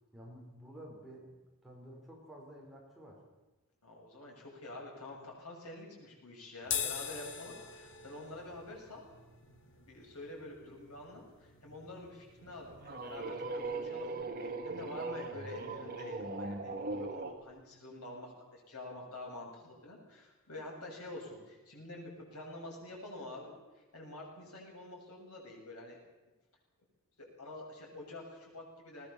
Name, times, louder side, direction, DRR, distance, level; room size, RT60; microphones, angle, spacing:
voice 1, 0.1-1.4 1.6-3.2, right 1 dB, ahead, -3 dB, 4.8 m, -51 dB
voice 2, 3.8-9.0 9.7-26.0 27.2-29.1, left 2 dB, 90° left, -1 dB, 7.4 m, -47 dB
sound 1, 6.6-13.2, left 7 dB, 55° left, 1.8 m, -43 dB
sound 2, 12.5-17.4, right 3 dB, 40° right, 1.8 m, -39 dB
20.5 x 19.0 x 7.1 m, 1.1 s
head